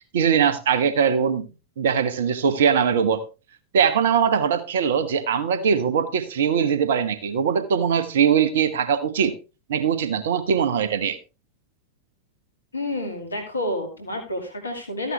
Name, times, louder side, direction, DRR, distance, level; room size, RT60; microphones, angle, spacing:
voice 1, 0.1-1.4 1.8-3.2 3.7-9.3 9.7-11.2, right 7 dB, 60° right, 11 dB, 1.4 m, -21 dB
voice 2, 12.7-15.1, left 1 dB, 80° left, 5 dB, 2.3 m, -29 dB
14.0 x 9.8 x 3.4 m, 0.30 s
figure-of-eight pair, 90°, 0 cm